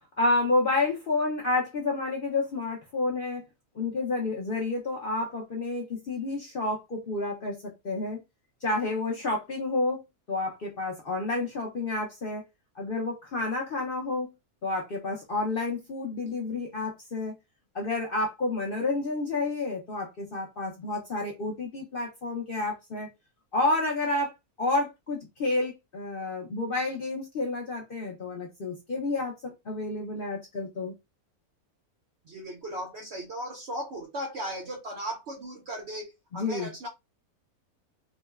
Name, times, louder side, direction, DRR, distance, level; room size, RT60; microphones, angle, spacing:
voice 1, 0.2-3.4 3.8-8.2 8.6-10.0 10.3-12.4 12.8-14.3 14.6-17.4 17.7-23.1 23.5-24.3 24.6-30.9 36.3-36.7, left 2 dB, 55° left, 0.6 m, -30 dB
voice 2, 32.3-36.9, right 1 dB, 65° right, 0.6 m, -37 dB
3.7 x 2.1 x 2.3 m
omnidirectional pair, 1.6 m